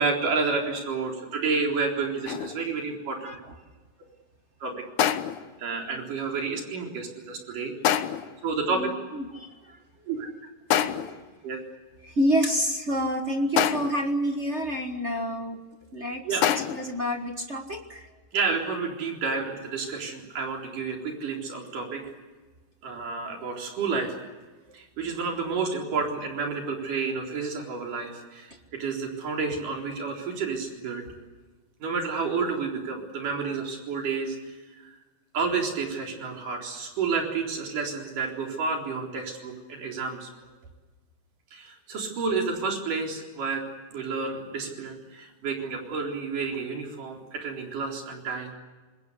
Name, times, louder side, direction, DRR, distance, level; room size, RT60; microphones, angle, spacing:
voice 1, 0.0-3.3 4.6-4.7 5.6-7.7 8.4-8.9 10.1-10.3 11.4-11.6 15.1-15.2 16.2-16.5 18.3-22.0 22.8-24.2 24.7-31.0 31.8-35.0 35.3-40.3 41.5-43.6 43.9-48.5, right 4 dB, 70° right, 1 dB, 5.5 m, -30 dB
sound 1, 2.3-2.7 5.0-5.6 7.8-8.4 10.7-11.3 13.6-14.1 16.4-17.0, left 10 dB, 70° left, 2.3 m, -26 dB
voice 2, 8.8-9.5 12.0-15.6 15.9-18.1, equal, 45° right, 5 dB, 0.8 m, -28 dB
27.0 x 21.0 x 8.2 m, 1.3 s
omnidirectional pair, 3.8 m